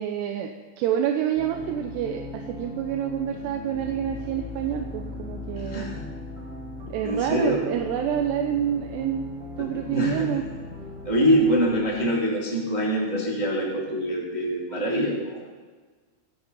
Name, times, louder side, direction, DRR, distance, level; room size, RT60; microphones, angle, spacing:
voice 1, 0.0-5.9 6.9-10.4, right 10 dB, 75° right, 4 dB, 2.7 m, -28 dB
sound 1, 1.3-12.1, left 2 dB, 40° right, 1.0 m, -38 dB
voice 2, 5.5-6.0 7.0-7.6 9.9-10.3 11.0-15.4, equal, 15° right, -4 dB, 1.8 m, -24 dB
24.5 x 8.5 x 5.7 m, 1.3 s
omnidirectional pair, 5.4 m